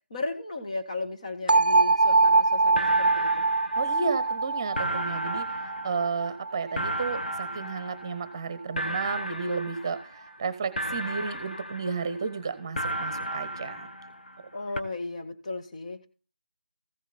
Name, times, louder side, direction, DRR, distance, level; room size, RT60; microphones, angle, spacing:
voice 1, 0.1-3.5 14.5-16.1, left 3 dB, 40° left, 6 dB, 1.6 m, -35 dB
sound 1, 1.5-7.3, right 3 dB, 65° right, 0.5 m, -24 dB
sound 2, 2.3-2.4 2.8-4.4 4.8-8.5 8.8-10.4 10.8-12.4 12.8-14.5 14.8-14.9, right 1 dB, 65° left, 1.0 m, -35 dB
voice 2, 3.8-13.9, right 5 dB, 25° right, 15 dB, 1.0 m, -32 dB
15.0 x 7.3 x 4.1 m, 0.34 s
figure-of-eight pair, 160°, 5 cm